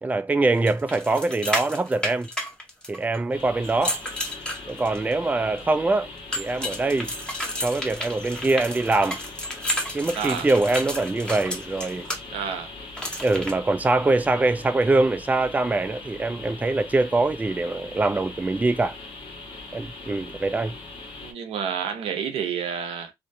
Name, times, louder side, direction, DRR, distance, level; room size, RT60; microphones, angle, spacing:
voice 1, 0.0-2.3 2.9-4.0 4.7-6.1 6.4-7.1 7.6-9.2 9.9-12.1 13.2-19.0 19.7-20.7, right 2 dB, 15° right, 0.3 m, -23 dB
sound 1, 0.7-3.2 3.6-5.1 6.3-12.2 13.0-13.5, left 1 dB, 10° left, 1.0 m, -32 dB
sound 2, 3.3-21.3, left 3 dB, 60° left, 1.0 m, -41 dB
voice 2, 10.2-10.5 12.3-12.7 21.2-23.1, right 7 dB, 90° right, 0.6 m, -29 dB
2.5 x 2.1 x 2.6 m
cardioid pair, 55°, 10 cm